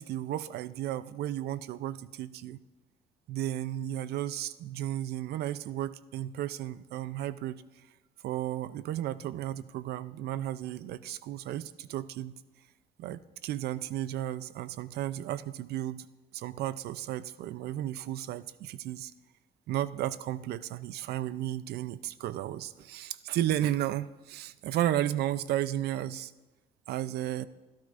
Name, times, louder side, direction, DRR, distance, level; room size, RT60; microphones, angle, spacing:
voice 1, 0.0-2.6 3.3-7.6 8.2-12.3 13.0-16.1 16.3-19.1 19.7-26.3 26.9-27.4, right 12 dB, 70° right, 15 dB, 0.6 m, -33 dB
28.0 x 13.0 x 2.6 m, 1.1 s
cardioid pair, 110°, 17 cm